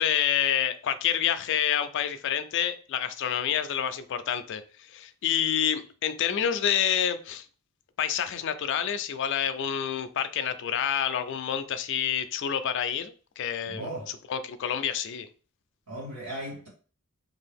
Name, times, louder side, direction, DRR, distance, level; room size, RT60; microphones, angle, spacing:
voice 1, 0.0-7.4 8.0-13.9 14.3-15.3, left 9 dB, 55° left, 0.3 m, -28 dB
voice 2, 13.7-14.1 15.9-16.7, right 1 dB, 90° right, 1.6 m, -37 dB
2.7 x 2.3 x 3.4 m
head